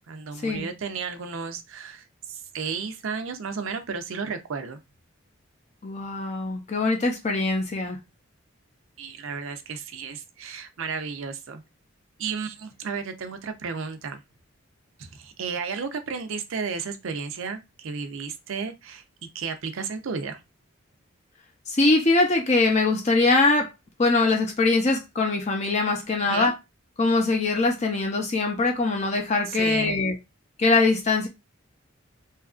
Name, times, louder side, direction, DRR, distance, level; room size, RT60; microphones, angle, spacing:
voice 1, 0.1-4.8 9.0-11.6 12.2-14.2 15.0-19.0 19.3-20.4 26.2-26.5 29.5-30.0, right 5 dB, 70° right, 0.5 m, -33 dB
voice 2, 5.8-8.0 21.7-23.7 24.0-26.6 27.0-30.1 30.6-31.3, left 3 dB, 30° left, 0.5 m, -22 dB
2.8 x 2.4 x 2.4 m
head